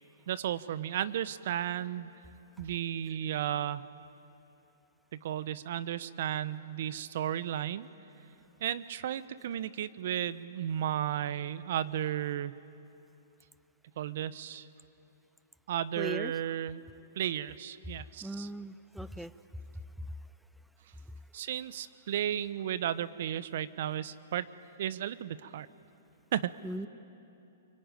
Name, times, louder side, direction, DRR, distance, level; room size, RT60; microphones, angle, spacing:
voice 1, 0.3-2.1 2.6-3.8 5.1-7.9 8.6-12.5 14.0-14.7 15.7-16.8 17.1-18.5 21.3-24.5 24.8-25.7 26.3-26.5, right 11 dB, 60° right, 16 dB, 0.9 m, -34 dB
voice 2, 16.0-16.3 18.2-19.3 26.6-26.9, right 1 dB, ahead, 15 dB, 0.6 m, -38 dB
24.0 x 23.5 x 9.1 m, 2.8 s
hypercardioid pair, 120°, 0 cm